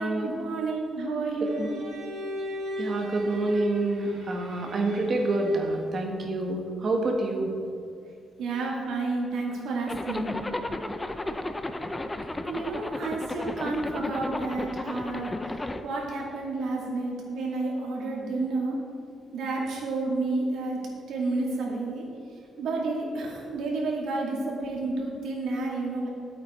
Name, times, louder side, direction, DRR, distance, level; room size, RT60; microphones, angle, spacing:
voice 1, 0.0-1.7 8.4-10.4 12.5-15.4 15.8-18.8 19.3-20.8 21.1-22.0 22.6-26.1, right 3 dB, 90° right, -2 dB, 2.3 m, -30 dB
voice 2, 1.4-1.7 2.8-7.5, right 2 dB, 45° right, 2 dB, 1.5 m, -27 dB
Bowed string instrument, 1.4-6.0, equal, 75° right, 2.3 m, -38 dB
Zipper (clothing), 9.9-15.8, left 1 dB, 15° left, 0.6 m, -33 dB
11.5 x 8.5 x 4.4 m, 2.5 s
cardioid pair, 115°, 0 cm